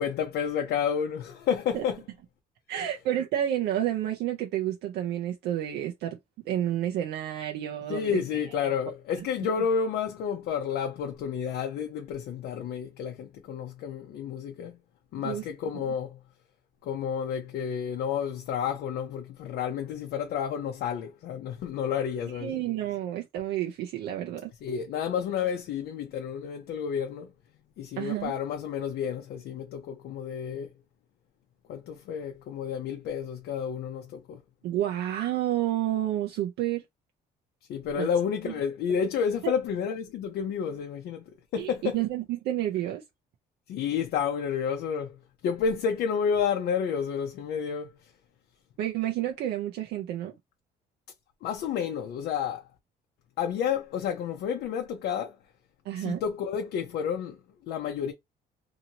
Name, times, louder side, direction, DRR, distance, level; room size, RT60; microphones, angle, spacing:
voice 1, 0.0-2.0 2.8-2.9 7.9-14.8 15.1-16.2 16.8-22.6 24.6-27.3 27.8-30.7 31.7-34.4 37.7-42.0 43.7-48.1 51.4-52.7 53.4-55.4 56.0-58.1, left 7 dB, 75° left, 0.6 m, -30 dB
voice 2, 2.7-6.2 6.5-8.2 15.2-15.4 15.7-15.8 22.3-24.5 28.0-28.3 34.6-36.8 38.0-38.1 38.4-38.5 41.6-43.0 48.8-50.3 55.9-56.2, right 12 dB, 80° right, 0.6 m, -30 dB
2.7 x 2.7 x 2.8 m
cardioid pair, 110°, 17 cm